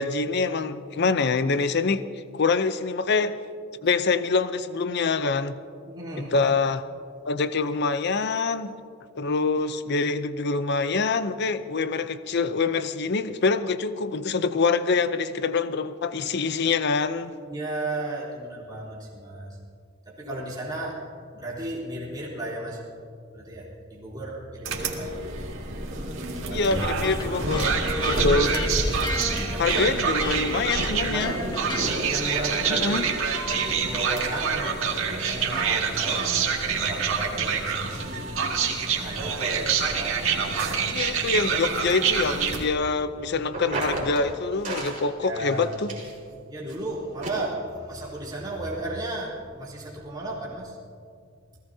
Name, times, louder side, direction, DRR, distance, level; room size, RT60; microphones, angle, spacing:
voice 1, 0.0-2.0 2.3-3.4 3.8-5.6 6.2-6.8 7.3-8.8 9.1-17.3 20.3-20.4 26.5-27.7 28.1-28.5 29.6-31.3 32.7-33.0 40.9-45.9, left 4 dB, 55° left, 12 dB, 0.6 m, -25 dB
voice 2, 5.8-6.5 17.5-19.6 20.1-21.0 21.3-22.8 23.3-25.3 26.1-26.7 29.5-30.1 31.0-33.2 33.5-36.3 36.6-38.4 38.9-40.8 43.3-43.4 45.2-45.7 46.5-50.8, right 2 dB, 20° right, -7 dB, 3.7 m, -34 dB
sound 1, 24.6-42.7, right 5 dB, 85° right, 2.1 m, -26 dB
Electric guitar, 26.7-32.0, left 2 dB, 20° left, 1.1 m, -34 dB
sound 2, 43.5-44.3 44.6-45.0 45.4-46.3 46.7-46.8 47.2-47.3, right 2 dB, 40° right, 4.5 m, -32 dB
29.0 x 18.0 x 2.8 m, 2.3 s
head